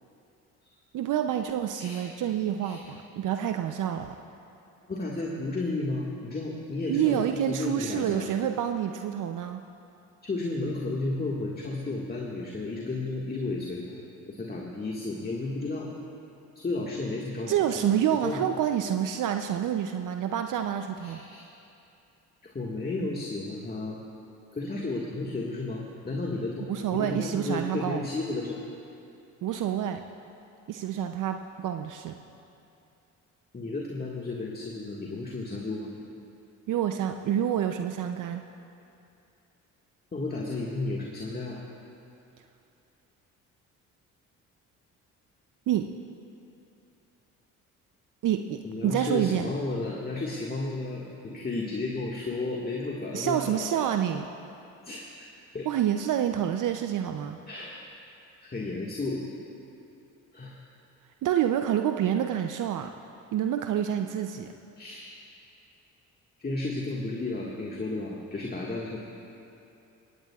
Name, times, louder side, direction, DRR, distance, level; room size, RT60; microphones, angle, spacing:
voice 1, 0.9-4.1 6.9-9.6 17.5-21.2 26.7-28.1 29.4-30.0 30.7-32.2 36.7-38.4 45.7-45.9 48.2-49.5 53.1-54.2 55.7-57.4 61.2-62.9 63.3-64.5, right 10 dB, 60° right, 6 dB, 0.6 m, -28 dB
voice 2, 1.8-2.1 2.6-2.9 4.9-8.3 10.2-14.0 14.3-15.9 16.6-18.5 21.0-21.5 22.4-24.0 24.5-28.6 29.5-29.7 33.5-35.9 40.1-41.6 48.6-54.0 54.8-55.3 55.5-55.7 57.5-57.7 58.4-59.3 60.3-60.6 64.8-65.1 66.4-69.0, left 2 dB, 25° left, -3 dB, 1.8 m, -33 dB
17.0 x 17.0 x 2.4 m, 2.7 s
supercardioid pair, 65°, 36 cm